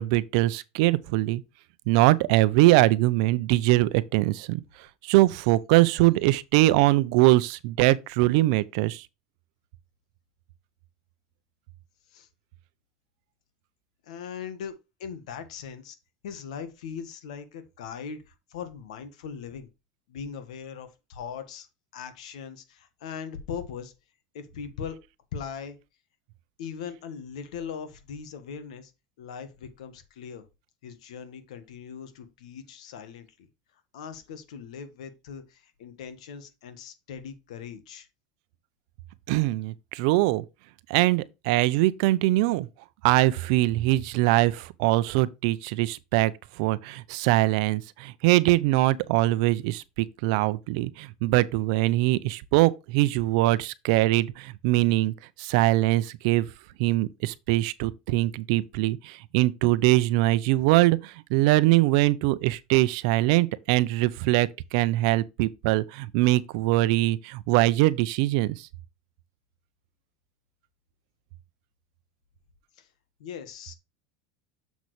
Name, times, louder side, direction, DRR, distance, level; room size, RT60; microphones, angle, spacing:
voice 1, 0.0-1.4 1.9-4.6 5.0-9.0 39.3-40.4 40.9-42.7 43.0-56.5 56.8-68.7, right 18 dB, 70° right, 0.6 m, -22 dB
voice 2, 14.0-16.0 16.2-19.7 20.1-21.7 21.9-23.9 24.3-25.0 25.3-25.8 26.6-28.9 29.2-30.5 30.8-33.5 33.9-38.1 72.8-72.9 73.2-73.8, left 7 dB, 90° left, 1.4 m, -40 dB
7.1 x 6.2 x 3.2 m
supercardioid pair, 120°, 4 cm